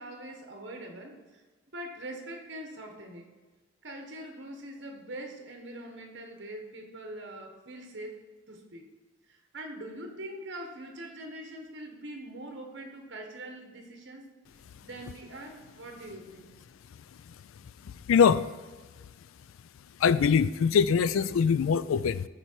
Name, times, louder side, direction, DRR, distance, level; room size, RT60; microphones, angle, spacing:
voice 1, 0.0-1.4 1.7-3.3 3.8-8.9 9.3-14.3 14.8-16.5, right 1 dB, 60° right, 4 dB, 1.2 m, -43 dB
voice 2, 17.8-18.5 20.0-22.3, left 6 dB, 85° left, 16 dB, 0.3 m, -23 dB
13.5 x 4.5 x 4.5 m, 1.3 s
head